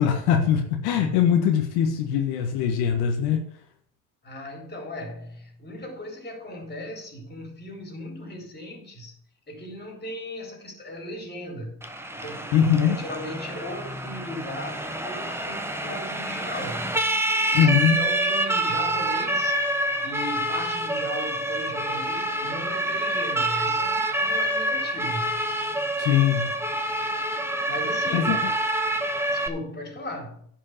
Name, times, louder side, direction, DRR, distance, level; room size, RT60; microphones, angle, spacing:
voice 1, 0.0-3.5 12.5-13.0 17.5-18.1 26.0-26.5 28.1-28.5, left 8 dB, 85° left, 1.6 m, -22 dB
voice 2, 4.2-9.2 9.5-11.8 12.2-16.9 17.5-19.6 20.0-25.3 27.7-28.4 29.3-30.5, left 1 dB, 25° left, 3.8 m, -37 dB
Siren, 11.8-29.5, right 1 dB, 5° right, 1.3 m, -27 dB
10.5 x 5.5 x 7.2 m
supercardioid pair, 90°, 38 cm